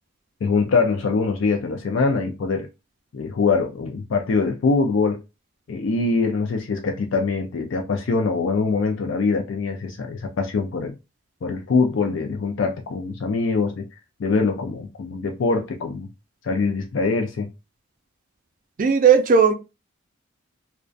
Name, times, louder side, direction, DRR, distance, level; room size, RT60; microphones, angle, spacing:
voice 1, 0.4-2.7 3.1-5.2 5.7-11.0 11.4-13.9 14.2-16.1 16.4-17.5, left 4 dB, 65° left, 0.4 m, -23 dB
voice 2, 18.8-19.5, right 6 dB, 40° right, 0.4 m, -15 dB
2.3 x 2.2 x 2.4 m
head